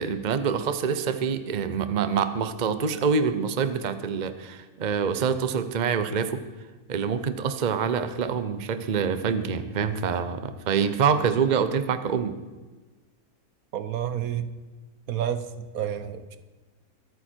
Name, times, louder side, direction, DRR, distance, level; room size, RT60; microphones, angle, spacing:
voice 1, 0.0-6.4 6.9-12.3, right 6 dB, 40° right, 11 dB, 0.8 m, -26 dB
voice 2, 13.7-14.5 15.1-15.5 15.7-16.4, right 10 dB, 80° right, 12 dB, 1.3 m, -29 dB
23.5 x 9.3 x 4.5 m, 1.3 s
omnidirectional pair, 1.5 m